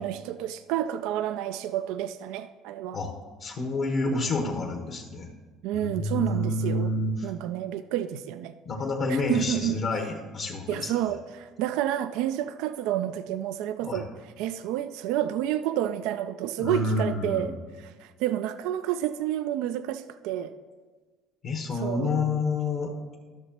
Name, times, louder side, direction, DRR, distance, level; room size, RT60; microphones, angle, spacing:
voice 1, 0.0-3.0 5.6-6.9 7.2-8.5 9.1-9.8 10.7-14.1 14.4-20.5 21.8-22.2, right 11 dB, 75° right, 11 dB, 0.3 m, -30 dB
voice 2, 3.4-5.3 5.7-7.3 8.6-10.9 13.8-14.0 16.6-17.6 21.4-22.9, left 2 dB, 55° left, 1 dB, 1.2 m, -28 dB
12.5 x 6.4 x 2.9 m, 1.4 s
supercardioid pair, 75°, 0 cm